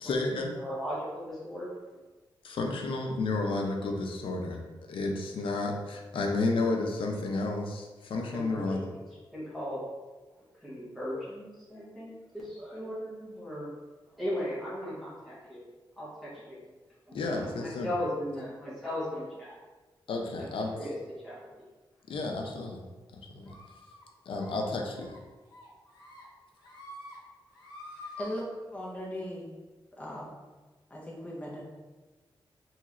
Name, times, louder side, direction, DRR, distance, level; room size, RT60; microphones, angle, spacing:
voice 1, 0.0-0.5 2.4-4.6 4.9-8.8 17.1-17.9 20.1-20.8 22.1-22.8 23.1-23.6 24.3-25.1, left 3 dB, 80° left, 2 dB, 0.5 m, -31 dB
voice 2, 0.5-1.7 8.3-9.0 9.3-9.8 10.6-13.7 14.2-15.6 16.0-16.6 17.1-19.5 20.4-21.0 21.2-21.6, equal, ahead, -9 dB, 1.0 m, -37 dB
sound 1, 23.5-24.0 24.4-24.6 24.9-25.2 25.5-26.2 26.6-27.2 27.5-28.3, left 2 dB, 55° left, 1.4 m, -47 dB
voice 3, 28.7-29.5 30.0-30.4 30.9-31.6, equal, 15° left, -4 dB, 0.6 m, -38 dB
3.1 x 2.9 x 2.4 m, 1.3 s
wide cardioid pair, 160°, 9 cm